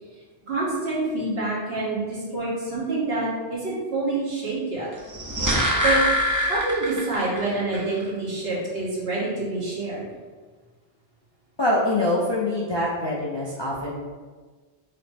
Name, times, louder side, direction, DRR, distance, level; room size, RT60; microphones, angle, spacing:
voice 1, 0.4-4.9 5.8-6.0 6.5-10.0, right 2 dB, 65° right, -7 dB, 1.4 m, -27 dB
sound 1, 5.0-7.4 7.7-7.8, equal, 25° right, 0.5 m, -23 dB
voice 2, 11.6-13.9, left 1 dB, 35° left, -6 dB, 0.4 m, -24 dB
5.7 x 2.0 x 3.3 m, 1.4 s
omnidirectional pair, 1.1 m